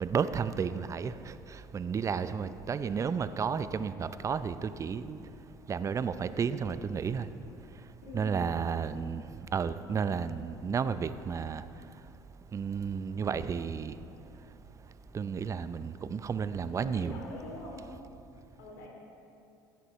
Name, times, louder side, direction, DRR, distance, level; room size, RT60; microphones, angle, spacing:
voice 1, 0.0-5.2 5.7-7.3 8.1-9.2 9.5-11.6 12.5-14.0 15.1-17.2, right 6 dB, 30° right, 14 dB, 0.5 m, -32 dB
voice 2, 8.0-8.5 16.7-17.9 18.6-18.9, left 2 dB, 75° left, -1 dB, 2.6 m, -44 dB
16.0 x 10.5 x 3.1 m, 2.7 s
hypercardioid pair, 70°, 10 cm